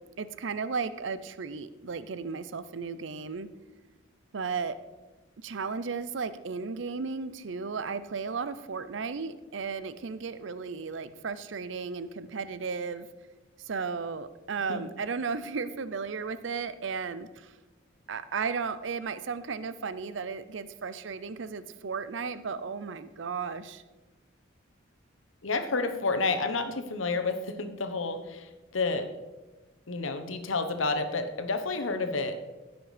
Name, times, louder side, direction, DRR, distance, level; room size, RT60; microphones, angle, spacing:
voice 1, 0.2-3.5 4.3-4.8 5.4-13.1 13.6-17.5 18.1-23.8, right 5 dB, 65° right, 14 dB, 0.5 m, -34 dB
voice 2, 25.4-29.1 29.9-32.4, left 3 dB, 85° left, 8 dB, 1.1 m, -30 dB
15.5 x 6.1 x 5.0 m, 1.2 s
head